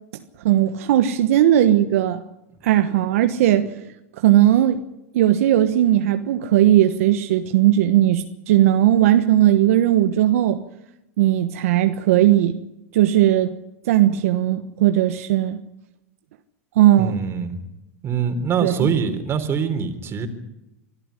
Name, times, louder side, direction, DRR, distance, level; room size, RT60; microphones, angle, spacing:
voice 1, 0.4-2.2 2.6-3.7 4.2-4.8 5.1-10.6 11.2-12.6 12.9-13.5 13.8-15.6 16.8-17.2 18.6-18.9, right 12 dB, 70° right, 1.2 m, -17 dB
voice 2, 17.0-17.6 18.0-20.3, right 6 dB, 30° right, 3.7 m, -24 dB
24.5 x 14.0 x 9.8 m
hypercardioid pair, 110°, 8 cm